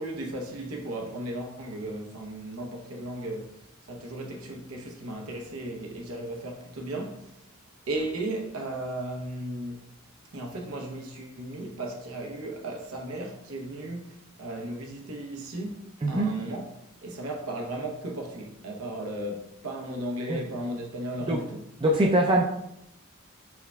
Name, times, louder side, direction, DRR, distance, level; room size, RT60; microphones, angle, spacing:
voice 1, 0.0-3.5 3.8-7.3 7.9-9.8 10.3-16.7 17.0-21.7, right 1 dB, 85° right, 0.7 m, -35 dB
voice 2, 21.8-22.5, right 1 dB, 25° right, 0.3 m, -23 dB
4.7 x 4.3 x 2.3 m
head